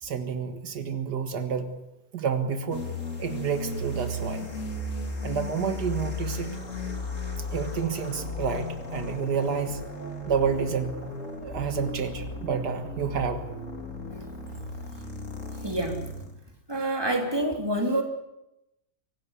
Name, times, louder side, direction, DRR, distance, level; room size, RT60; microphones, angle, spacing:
voice 1, 0.0-1.8 2.1-2.9 3.2-4.5 5.2-6.6 7.5-9.8 10.3-11.1 11.4-13.4, right 6 dB, 85° right, 8 dB, 2.1 m, -29 dB
sound 1, 2.7-16.4, left 2 dB, 50° left, 3.7 m, -35 dB
voice 2, 15.6-16.1 16.7-18.0, right 1 dB, 15° right, 2 dB, 3.5 m, -27 dB
24.5 x 17.5 x 8.4 m, 0.90 s
omnidirectional pair, 1.7 m